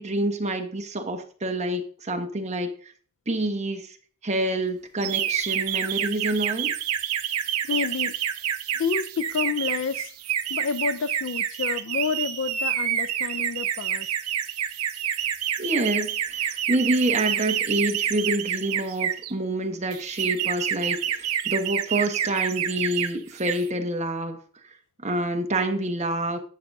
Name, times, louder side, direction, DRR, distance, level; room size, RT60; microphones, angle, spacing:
voice 1, 0.0-2.9 3.3-4.0 4.2-6.7 15.6-24.4 25.0-26.4, right 1 dB, 30° right, 1.2 m, -27 dB
sound 1, 5.0-19.3 19.9-23.1 23.4-23.7, right 10 dB, 75° right, 0.7 m, -28 dB
voice 2, 7.6-8.1 8.7-10.1 10.5-14.1, left 6 dB, 60° left, 0.4 m, -29 dB
12.0 x 7.6 x 2.6 m
head